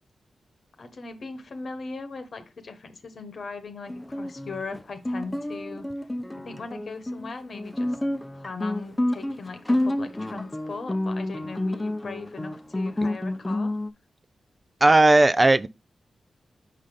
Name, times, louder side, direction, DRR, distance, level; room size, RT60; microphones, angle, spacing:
voice 1, 0.8-5.9 6.4-8.0 8.3-13.8, left 4 dB, 65° left, 1.2 m, -39 dB
Guitar, 3.9-13.9, left 1 dB, 20° left, 0.7 m, -29 dB
voice 2, 14.8-15.7, right 2 dB, 30° right, 0.5 m, -16 dB
5.5 x 4.9 x 3.8 m
supercardioid pair, 45°, 0 cm